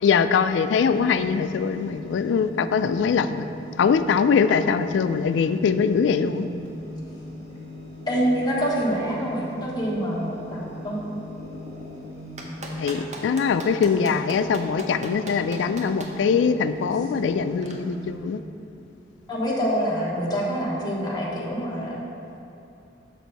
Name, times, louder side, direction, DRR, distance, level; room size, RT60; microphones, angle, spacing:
voice 1, 0.0-3.5 3.8-6.5 12.8-18.4, left 6 dB, 90° left, 11 dB, 0.3 m, -22 dB
sound 1, 0.9-18.1, left 1 dB, 80° right, 1.7 m, -39 dB
voice 2, 8.1-11.0 19.3-22.0, equal, 25° left, -5 dB, 1.2 m, -26 dB
Clapping, 12.4-16.1 17.6-17.7, right 2 dB, 40° right, 0.7 m, -37 dB
6.6 x 6.3 x 4.1 m, 2.7 s
head